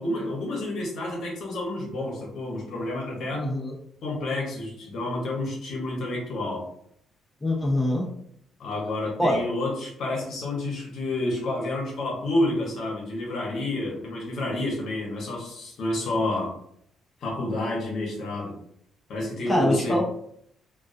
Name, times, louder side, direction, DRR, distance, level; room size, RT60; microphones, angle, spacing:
voice 1, 0.0-3.5 4.0-6.7 8.6-16.5 17.2-18.5 19.1-20.0, left 1 dB, 70° left, -2 dB, 0.8 m, -29 dB
voice 2, 3.3-3.8 7.4-8.1 9.2-9.4 19.5-20.0, left 1 dB, 15° left, -2 dB, 0.6 m, -24 dB
2.2 x 2.2 x 2.5 m, 0.68 s
cardioid pair, 90°, 0 cm